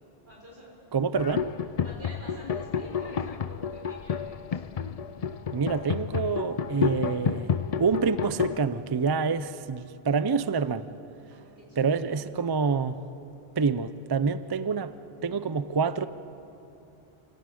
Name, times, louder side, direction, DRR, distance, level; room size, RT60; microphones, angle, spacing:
voice 1, 0.2-0.8 1.8-4.6 11.3-12.2, equal, 70° right, 6.4 m, -49 dB
voice 2, 0.9-1.5 5.5-10.9 11.8-13.0 13.6-14.9 15.2-16.1, right 5 dB, 40° right, 0.3 m, -27 dB
sound 1, 1.2-8.6, left 7 dB, 50° left, 0.5 m, -30 dB
29.0 x 11.5 x 8.4 m
omnidirectional pair, 1.1 m